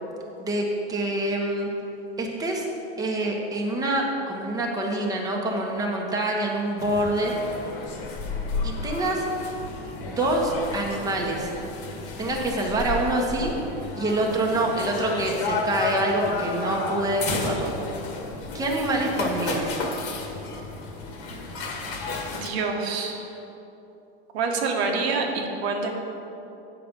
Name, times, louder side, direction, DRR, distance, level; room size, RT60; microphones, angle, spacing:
voice 1, 0.4-1.7 2.2-2.7 3.0-7.3 8.6-9.2 10.1-11.5 12.2-13.5 14.0-17.7 18.5-19.8, right 1 dB, 10° right, -1 dB, 1.1 m, -26 dB
sound 1, 6.8-22.5, left 3 dB, 45° left, 1.4 m, -32 dB
voice 2, 22.3-23.2 24.3-25.9, right 4 dB, 80° right, 1 dB, 1.3 m, -26 dB
8.7 x 5.8 x 5.2 m, 3.0 s
supercardioid pair, 125°, 32 cm